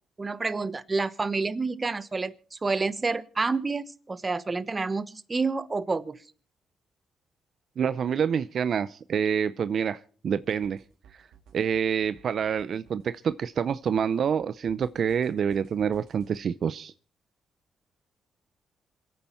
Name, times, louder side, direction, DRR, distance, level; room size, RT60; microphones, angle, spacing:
voice 1, 0.2-6.2, right 3 dB, 30° right, 14 dB, 1.1 m, -29 dB
voice 2, 7.8-10.8 11.5-16.9, right 7 dB, 60° right, 13 dB, 0.6 m, -27 dB
sound 1, 10.4-16.4, right 7 dB, 85° right, 2.9 m, -58 dB
27.0 x 9.1 x 4.5 m, 0.42 s
cardioid pair, 80°, 0 cm